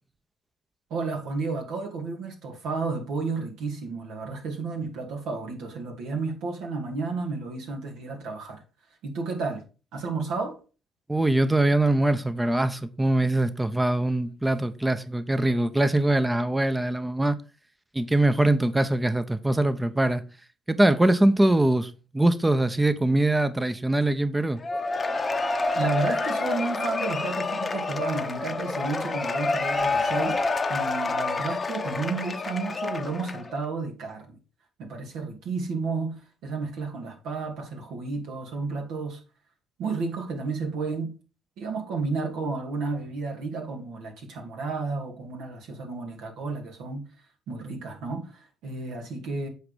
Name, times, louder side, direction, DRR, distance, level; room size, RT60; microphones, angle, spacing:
voice 1, 0.9-8.6 9.0-9.6 9.9-10.6 25.7-30.4 30.7-34.4 34.8-39.2 39.8-41.2 41.6-47.1 47.5-49.5, right 4 dB, 70° right, 2.5 m, -32 dB
voice 2, 11.1-17.4 17.9-20.2 20.7-24.6, right 1 dB, 10° right, 0.9 m, -23 dB
Cheering / Applause / Crowd, 24.6-33.5, left 3 dB, 35° left, 0.9 m, -28 dB
8.1 x 4.9 x 5.2 m
hypercardioid pair, 55°, 0 cm